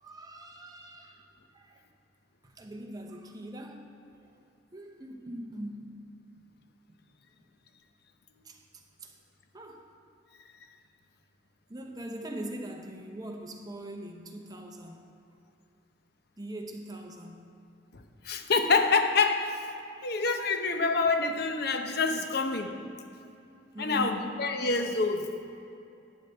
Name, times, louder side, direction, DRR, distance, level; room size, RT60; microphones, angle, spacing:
voice 1, 0.0-1.2 1.5-1.8 2.4-3.9 4.7-6.0 8.4-8.6 9.0-9.1 9.5-9.9 11.7-15.0 16.4-17.5 23.7-24.3, right 1 dB, 20° right, 3 dB, 0.8 m, -41 dB
voice 2, 18.2-19.5 20.0-22.8 23.8-25.2, left 4 dB, 55° left, 6 dB, 0.7 m, -26 dB
10.5 x 9.1 x 3.5 m, 2.7 s
head